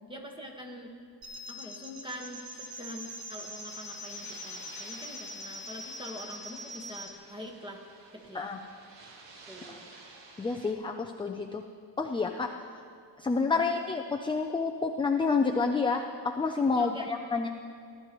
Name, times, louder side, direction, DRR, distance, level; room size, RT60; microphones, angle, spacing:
voice 1, 0.1-0.9 1.5-7.8 8.1-8.5 9.5-9.9 13.5-13.7 16.7-17.2, equal, 10° right, 1 dB, 1.3 m, -44 dB
sound 1, 1.2-7.1, left 1 dB, 55° right, 1.4 m, -43 dB
sound 2, 2.0-10.7, right 3 dB, 80° right, 1.5 m, -52 dB
voice 2, 10.4-11.6 12.0-12.5 13.2-17.5, left 4 dB, 15° left, 3 dB, 0.3 m, -29 dB
19.5 x 11.5 x 3.0 m, 2.3 s
wide cardioid pair, 150°, 43 cm